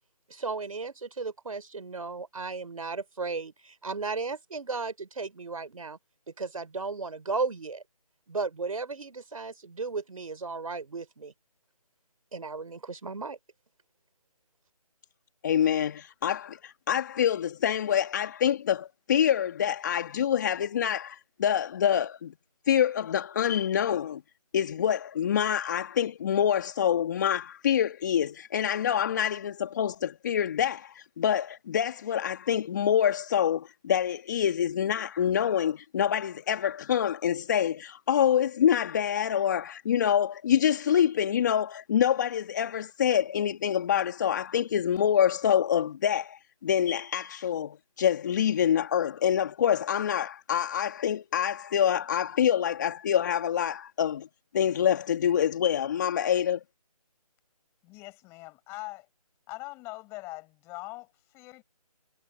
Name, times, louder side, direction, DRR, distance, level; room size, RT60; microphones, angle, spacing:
voice 1, 0.3-6.0 6.4-7.8 8.3-11.3 12.3-13.4, right 4 dB, 60° right, 4.8 m, -35 dB
voice 2, 15.4-22.3 22.7-24.2 24.5-54.3 54.5-56.6, left 9 dB, 30° left, 1.9 m, -26 dB
voice 3, 57.8-59.1 59.5-61.6, left 22 dB, 15° left, 6.2 m, -42 dB
figure-of-eight pair, 160°, 20 cm